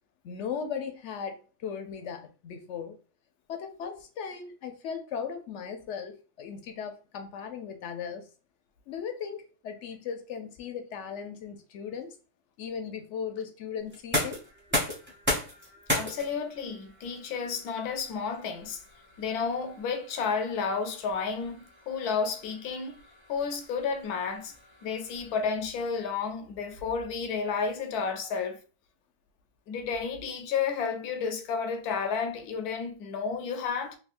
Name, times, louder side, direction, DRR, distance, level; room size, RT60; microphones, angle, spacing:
voice 1, 0.2-3.0 3.5-8.3 8.9-12.1 12.6-14.4 14.7-14.8, left 7 dB, 65° left, 0.7 m, -37 dB
sound 1, 13.9-25.7, left 1 dB, 10° right, 0.7 m, -37 dB
voice 2, 16.0-18.8 19.2-23.0 23.3-24.5 24.8-28.6 29.7-34.0, left 5 dB, 85° left, 1.1 m, -31 dB
3.4 x 2.9 x 2.5 m
omnidirectional pair, 1.6 m